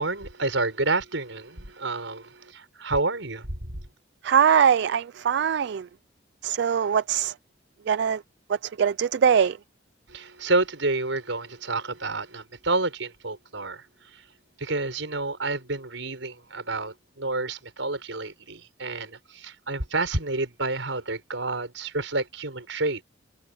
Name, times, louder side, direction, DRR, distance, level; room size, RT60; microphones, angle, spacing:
voice 1, 0.0-3.8 10.1-13.9 14.1-14.2 14.6-23.0, right 2 dB, 80° right, 5.4 m, -29 dB
voice 2, 4.2-5.9 6.4-7.3 7.9-8.2 8.5-9.6, right 7 dB, 60° right, 0.3 m, -22 dB
open air
head